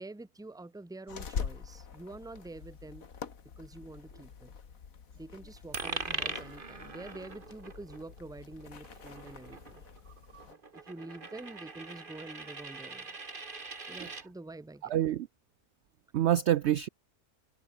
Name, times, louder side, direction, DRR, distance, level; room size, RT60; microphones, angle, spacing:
voice 1, 0.0-3.1 3.6-4.5 5.1-9.8 10.4-13.1 13.9-14.9, right 2 dB, 5° right, 0.9 m, -47 dB
sound 1, 1.1-10.5, left 6 dB, 60° left, 2.0 m, -44 dB
Coin (dropping), 5.7-14.3, right 3 dB, 35° right, 2.0 m, -42 dB
voice 2, 14.9-15.3 16.1-16.9, right 12 dB, 70° right, 0.6 m, -27 dB
omnidirectional pair, 1.7 m